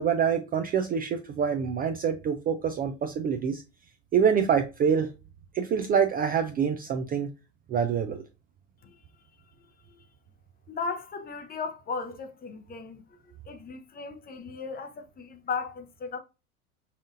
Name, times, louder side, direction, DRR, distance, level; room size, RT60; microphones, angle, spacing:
voice 1, 0.0-3.6 4.1-5.1 5.5-7.3 7.7-8.2, right 7 dB, 25° right, 0.3 m, -26 dB
voice 2, 10.7-16.2, left 5 dB, 25° left, 0.6 m, -36 dB
5.6 x 2.5 x 2.4 m
hypercardioid pair, 95°, 40 cm